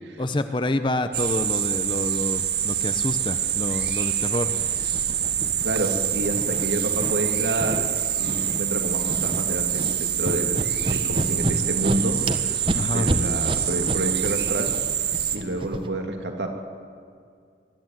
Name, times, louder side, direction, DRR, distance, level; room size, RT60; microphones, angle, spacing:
voice 1, 0.2-4.5 12.7-13.1, left 1 dB, 25° left, 9 dB, 0.8 m, -27 dB
sound 1, 1.1-15.4, right 10 dB, 65° right, 1.5 m, -26 dB
sound 2, 3.8-3.9 4.5-6.0 6.3-7.1 7.6-7.8 8.2-8.6 8.9-9.4 9.7-15.9, right 1 dB, 30° right, 1.2 m, -30 dB
voice 2, 5.6-7.9 8.2-12.6 12.9-14.7 15.3-16.5, right 1 dB, 80° right, 3 dB, 2.6 m, -28 dB
22.5 x 13.5 x 9.1 m, 2.2 s
head